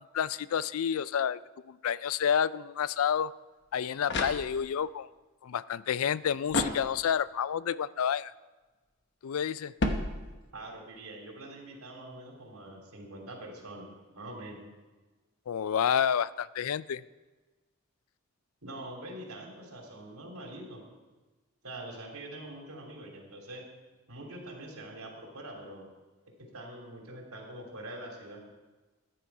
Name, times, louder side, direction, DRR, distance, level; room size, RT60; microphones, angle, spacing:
voice 1, 0.1-1.4 1.7-3.3 3.7-5.1 5.4-8.3 9.2-9.7 15.5-17.0, left 8 dB, 75° left, 18 dB, 0.4 m, -29 dB
sound 1, 3.6-4.9 6.5-7.4 9.8-10.7, left 2 dB, 50° left, 1.1 m, -33 dB
voice 2, 10.5-13.8 14.1-14.6 18.6-20.8 21.6-23.7 24.1-25.9 26.4-28.4, right 1 dB, 90° right, 0 dB, 3.1 m, -44 dB
14.5 x 10.0 x 4.7 m, 1.2 s
head